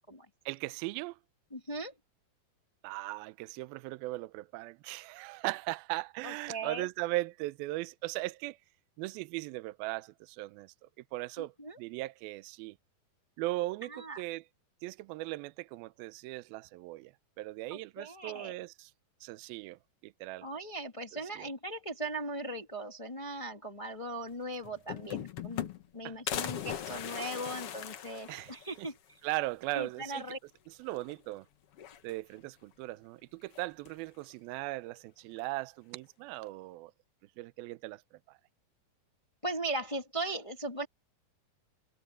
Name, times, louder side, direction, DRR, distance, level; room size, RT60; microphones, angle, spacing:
voice 1, 0.5-1.2 2.8-8.6 9.0-10.7 11.1-11.5 11.8-12.8 13.4-14.4 14.8-18.9 19.2-20.5 21.4-21.5 26.0-26.2 28.3-28.9 29.2-30.2 30.7-31.5 32.0-36.9 37.4-38.0 38.3-38.4, right 19 dB, 80° right, 2.4 m, -38 dB
voice 2, 1.5-1.9 6.2-6.9 11.4-11.8 13.9-14.2 17.7-18.6 20.4-29.2 29.7-30.4 39.4-40.8, right 2 dB, 40° left, 0.4 m, -39 dB
sound 1, 24.3-24.4 24.6-25.9 26.3-28.9 29.3-29.4 29.6-29.7 30.9-31.4 31.7-32.5 33.5-34.1, left 10 dB, 70° left, 1.3 m, -39 dB
omnidirectional pair, 4.4 m